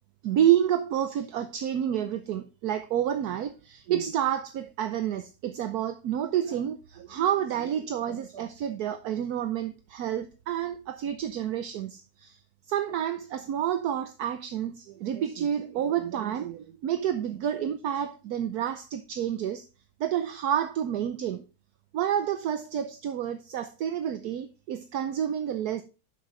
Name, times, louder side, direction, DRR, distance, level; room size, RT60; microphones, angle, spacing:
voice 1, 0.2-12.4 12.7-19.6 20.0-21.5 21.9-25.8, right 10 dB, 70° right, 1.2 m, -29 dB
11.5 x 6.2 x 3.2 m
omnidirectional pair, 1.8 m